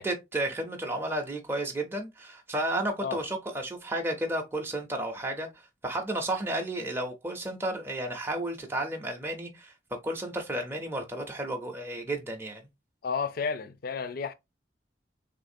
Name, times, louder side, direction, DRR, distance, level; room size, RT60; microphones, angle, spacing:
voice 1, 0.0-5.5 5.8-9.7 10.0-12.6, right 1 dB, 15° right, 0.5 m, -32 dB
voice 2, 13.0-14.3, left 5 dB, 55° left, 0.4 m, -31 dB
3.4 x 2.5 x 2.6 m
head